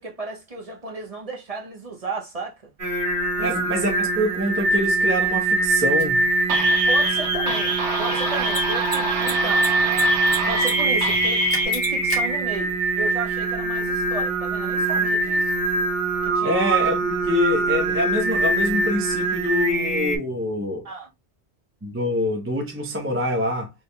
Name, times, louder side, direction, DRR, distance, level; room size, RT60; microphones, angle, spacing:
voice 1, 0.0-2.7 3.4-3.6 6.9-9.7 10.5-15.5 16.2-16.6 20.8-21.1, right 3 dB, 35° right, 0.9 m, -33 dB
Singing, 2.8-20.2, right 2 dB, 55° right, 1.7 m, -23 dB
voice 2, 3.4-6.2 16.4-20.8 21.8-23.7, left 1 dB, 15° right, 0.6 m, -25 dB
Mechanisms, 6.0-6.1 8.4-8.6 8.9-9.0 9.2-10.0 10.3-10.7 11.0-11.1 11.5-12.2, left 1 dB, 35° left, 1.5 m, -28 dB
sound 1, 6.5-11.7, right 4 dB, 90° right, 1.2 m, -26 dB
4.2 x 3.4 x 2.2 m
omnidirectional pair, 1.1 m